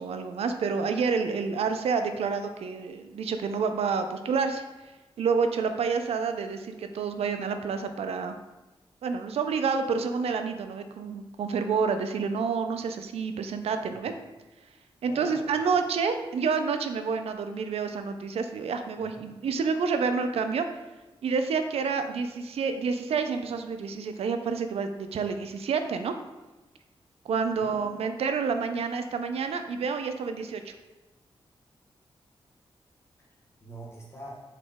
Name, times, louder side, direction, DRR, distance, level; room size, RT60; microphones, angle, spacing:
voice 1, 0.0-4.6 5.2-8.4 9.0-14.1 15.0-20.7 21.2-26.1 27.3-30.7, right 5 dB, 90° right, 7 dB, 0.4 m, -28 dB
voice 2, 15.1-15.6 19.0-19.3 27.6-28.0 33.2-34.4, right 1 dB, 25° left, -4 dB, 1.0 m, -45 dB
4.1 x 3.0 x 3.4 m, 1.1 s
wide cardioid pair, 115°, 10 cm